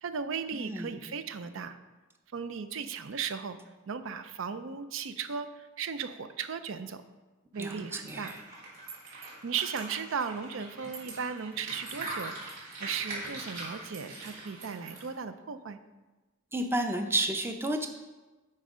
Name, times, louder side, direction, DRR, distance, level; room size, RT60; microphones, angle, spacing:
voice 1, 0.0-1.8 2.3-3.6 3.9-7.0 7.5-8.3 9.1-15.8, right 6 dB, 65° right, 11 dB, 0.5 m, -36 dB
voice 2, 0.5-1.0 7.6-8.4 16.5-17.9, right 1 dB, 10° right, 5 dB, 0.5 m, -31 dB
sound 1, 7.5-15.1, right 2 dB, 40° right, 2.8 m, -42 dB
8.9 x 4.3 x 5.0 m, 1.2 s
head